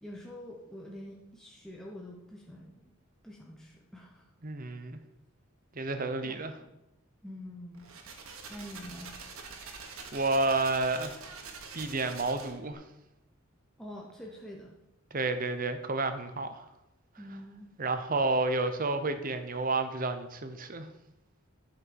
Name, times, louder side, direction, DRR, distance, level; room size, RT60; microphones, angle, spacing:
voice 1, 0.0-2.8 3.2-4.3 6.2-6.7 7.2-7.9 8.5-9.2 13.8-14.7 17.2-17.7, left 1 dB, ahead, -2 dB, 1.1 m, -46 dB
voice 2, 4.4-5.0 5.7-6.5 10.1-11.3 11.7-12.8 15.1-16.6 17.8-20.9, right 3 dB, 40° right, 9 dB, 0.9 m, -30 dB
sound 1, 7.7-12.7, right 4 dB, 75° right, 1.7 m, -45 dB
11.0 x 5.7 x 6.2 m, 0.93 s
head